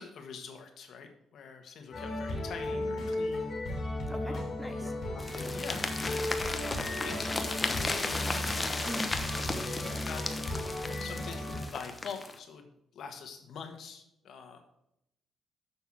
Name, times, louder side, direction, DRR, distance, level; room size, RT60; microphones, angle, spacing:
voice 1, 0.0-4.4 4.8-4.9 5.1-6.2 7.0-9.1 9.6-10.2 11.0-12.7 12.9-14.6, left 6 dB, 65° left, 5 dB, 1.4 m, -45 dB
sound 1, 1.9-11.6, left 1 dB, 45° left, 2.8 m, -35 dB
voice 2, 4.1-4.9 8.8-9.1, equal, ahead, 5 dB, 1.0 m, -40 dB
sound 2, 5.2-12.4, left 2 dB, 20° left, 1.0 m, -35 dB
6.9 x 5.6 x 6.0 m, 0.80 s
cardioid pair, 90°, 0 cm